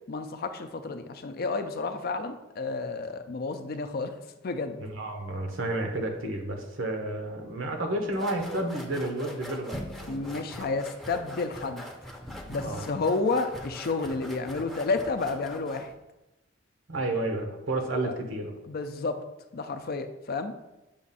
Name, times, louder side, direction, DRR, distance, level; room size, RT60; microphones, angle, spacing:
voice 1, 0.1-4.2 4.4-4.8 10.1-11.8 12.5-15.9 18.0-18.2 18.7-19.2 19.5-20.5, left 3 dB, 50° left, 8 dB, 0.5 m, -31 dB
voice 2, 4.8-10.7 12.6-12.8 16.9-18.5, right 1 dB, 85° right, 3 dB, 1.0 m, -31 dB
sound 1, 8.1-15.9, equal, ahead, 0.6 m, -42 dB
7.0 x 2.5 x 5.4 m, 0.98 s
head